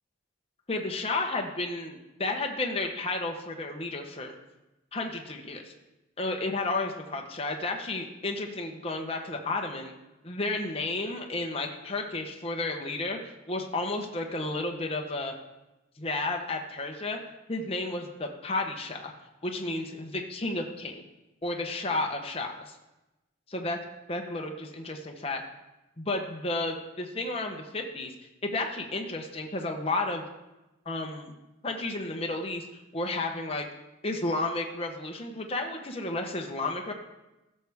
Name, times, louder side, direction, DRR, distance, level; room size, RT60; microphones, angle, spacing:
voice 1, 0.7-4.3 4.9-5.7 6.2-9.9 10.2-13.2 13.5-15.3 16.0-17.2 17.5-19.1 19.4-21.0 21.4-22.8 23.5-23.8 24.1-25.4 26.0-28.1 28.4-30.2 30.9-31.3 31.6-32.6 32.9-33.7 34.0-36.9, left 2 dB, 30° left, 2 dB, 0.9 m, -32 dB
15.5 x 6.5 x 3.5 m, 1.0 s
head